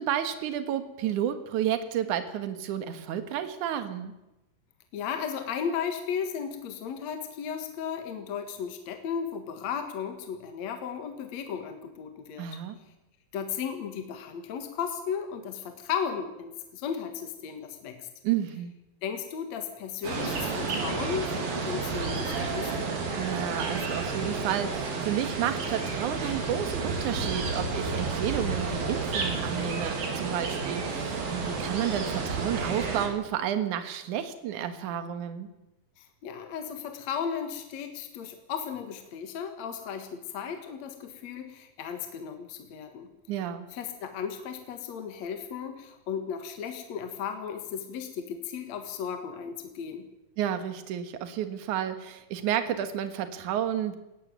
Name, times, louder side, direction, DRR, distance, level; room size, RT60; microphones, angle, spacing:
voice 1, 0.0-4.1 12.4-12.8 18.2-18.7 23.2-35.5 43.3-43.7 50.4-54.0, right 10 dB, 65° right, 10 dB, 2.8 m, -31 dB
voice 2, 4.9-12.5 13.3-18.1 19.0-22.7 36.0-43.1 43.7-50.1, left 7 dB, 55° left, 6 dB, 2.6 m, -35 dB
sound 1, 20.0-33.1, right 4 dB, 80° right, 5.1 m, -31 dB
19.0 x 14.5 x 9.4 m, 0.96 s
omnidirectional pair, 4.0 m